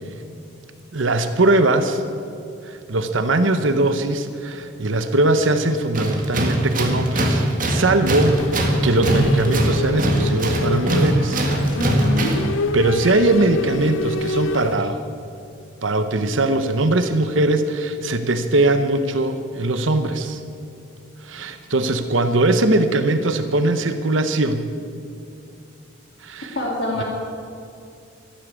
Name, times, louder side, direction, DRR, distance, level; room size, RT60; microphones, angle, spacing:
voice 1, 0.9-2.0 2.6-11.4 12.7-15.0 15.8-20.4 21.2-24.7 26.2-26.6 27.0-27.1, right 2 dB, 80° right, 9 dB, 0.9 m, -20 dB
Tools, 5.9-12.5, right 1 dB, 40° right, 1.8 m, -21 dB
sound 1, 8.0-14.8, left 3 dB, 85° left, 0.6 m, -28 dB
voice 2, 11.8-12.4 26.6-27.0, left 1 dB, 55° left, -2 dB, 2.3 m, -25 dB
13.5 x 12.5 x 8.2 m, 2.5 s
head